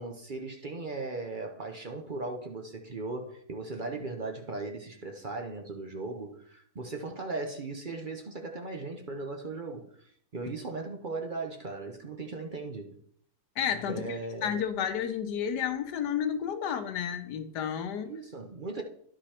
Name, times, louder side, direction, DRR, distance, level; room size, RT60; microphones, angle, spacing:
voice 1, 0.0-13.0 13.9-14.5 18.0-18.8, right 3 dB, 40° right, 3 dB, 0.7 m, -38 dB
voice 2, 13.6-18.1, left 8 dB, 85° left, 8 dB, 1.4 m, -31 dB
11.0 x 5.1 x 4.3 m, 0.64 s
omnidirectional pair, 1.8 m